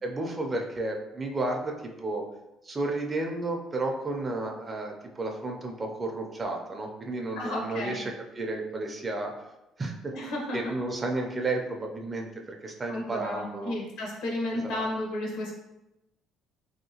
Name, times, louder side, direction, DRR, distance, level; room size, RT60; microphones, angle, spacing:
voice 1, 0.0-2.2 2.6-9.3 9.8-10.1 10.5-13.7 14.6-14.8, right 2 dB, 25° right, 2 dB, 0.4 m, -32 dB
voice 2, 7.3-8.0 10.1-10.7 12.9-15.5, left 1 dB, 85° left, -1 dB, 0.9 m, -32 dB
3.0 x 2.8 x 2.7 m, 0.95 s
cardioid pair, 125°, 0 cm